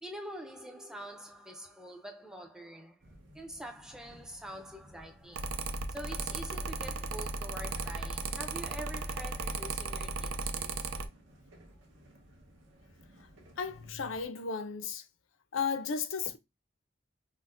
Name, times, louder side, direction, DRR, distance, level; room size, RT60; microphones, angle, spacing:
voice 1, 0.0-3.0 3.3-5.5 5.9-11.1, right 1 dB, 5° right, 0.4 m, -45 dB
sound 1, 3.0-14.3, equal, 70° right, 0.9 m, -57 dB
Mechanical fan, 5.3-11.1, right 3 dB, 90° right, 0.5 m, -36 dB
voice 2, 13.6-15.0 15.5-16.4, left 5 dB, 80° left, 0.5 m, -34 dB
5.6 x 2.1 x 2.5 m
head